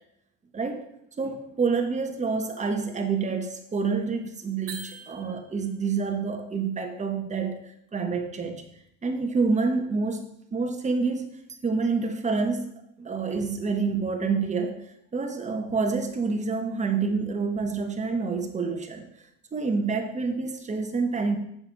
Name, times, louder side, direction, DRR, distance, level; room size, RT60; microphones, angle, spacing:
voice 1, 0.5-0.9 1.2-8.6 9.0-11.3 11.6-12.7 13.0-14.8 15.1-19.1 19.5-21.4, right 4 dB, 25° right, 4 dB, 1.4 m, -28 dB
sound 1, 4.7-5.8, right 6 dB, 55° right, 1.6 m, -42 dB
7.3 x 6.3 x 4.8 m, 0.74 s
supercardioid pair, 100°, 29 cm